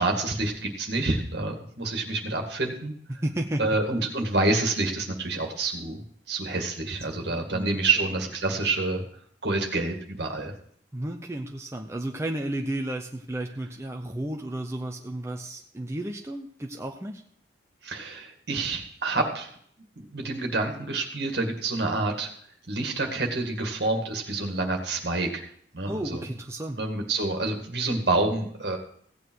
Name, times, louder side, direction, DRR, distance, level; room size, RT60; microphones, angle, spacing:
voice 1, 0.0-2.9 3.6-6.0 6.3-9.0 9.4-10.5 17.8-19.5 20.0-22.3 22.7-25.4 25.7-26.3 26.8-28.8, right 2 dB, 60° right, 3 dB, 2.0 m, -28 dB
voice 2, 3.1-3.6 4.0-4.1 7.2-7.8 10.9-17.2 25.9-26.8, right 1 dB, 15° right, 2 dB, 0.7 m, -33 dB
16.0 x 8.8 x 4.7 m, 0.62 s
head